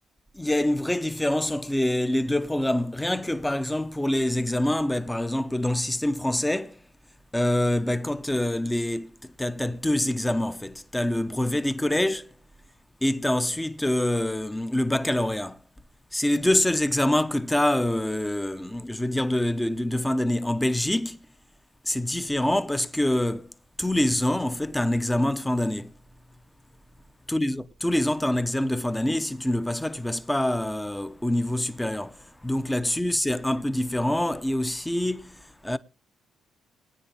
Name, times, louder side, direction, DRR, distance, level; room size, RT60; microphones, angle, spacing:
voice 1, 0.3-6.8 7.3-12.4 13.0-15.6 16.1-21.2 21.8-23.5 23.8-25.9 27.3-35.8, left 1 dB, 10° left, 0.9 m, -25 dB
20.5 x 9.7 x 3.4 m
cardioid pair, 90°, 0 cm